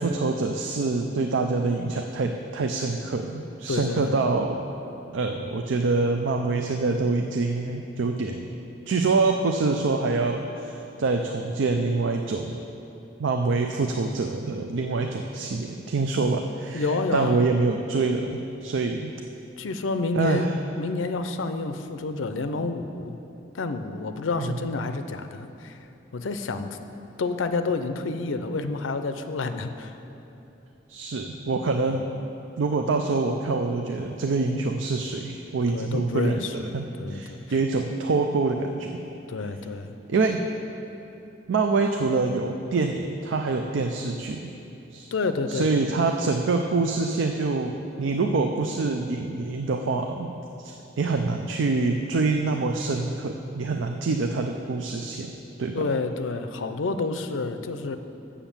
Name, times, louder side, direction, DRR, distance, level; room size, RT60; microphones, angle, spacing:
voice 1, 0.0-4.7 5.1-8.5 8.9-12.6 13.2-19.1 20.1-20.5 24.4-24.6 30.9-32.0 32.6-38.9 40.1-40.4 41.5-44.4 44.9-45.1 45.5-55.3 55.6-55.9, right 3 dB, 80° right, 4 dB, 0.5 m, -26 dB
voice 2, 3.7-4.2 16.2-16.3 16.7-17.4 19.6-20.5 20.8-23.2 23.5-25.8 26.1-26.8 27.2-29.9 31.9-32.0 35.7-37.6 39.3-39.9 45.1-45.7 55.7-58.0, left 3 dB, 90° left, 9 dB, 0.5 m, -29 dB
7.3 x 7.0 x 7.2 m, 2.9 s
head